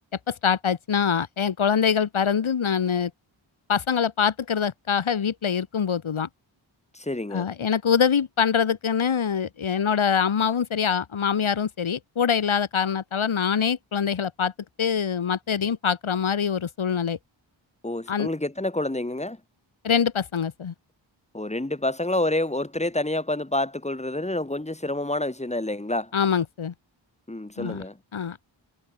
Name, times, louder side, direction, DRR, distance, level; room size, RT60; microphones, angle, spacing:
voice 1, 0.3-3.1 3.7-6.3 7.3-14.5 14.8-17.2 18.1-18.3 19.8-20.7 26.1-26.7 27.6-27.8 28.1-28.5, left 7 dB, 80° left, 5.0 m, -24 dB
voice 2, 6.9-7.5 17.8-19.4 21.3-26.1 27.3-28.0, left 1 dB, 15° left, 5.0 m, -28 dB
wide cardioid pair, 95°, 47 cm